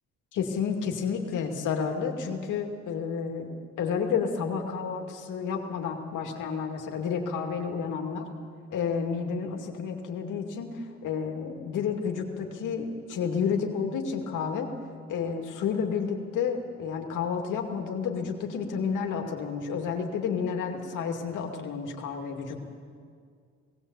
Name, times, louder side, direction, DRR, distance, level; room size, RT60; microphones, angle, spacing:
voice 1, 0.3-3.5 3.8-8.3 8.7-14.7 15.1-22.7, left 6 dB, 80° left, 3 dB, 2.4 m, -30 dB
18.5 x 17.0 x 8.2 m, 2.2 s
cardioid pair, 90°, 30 cm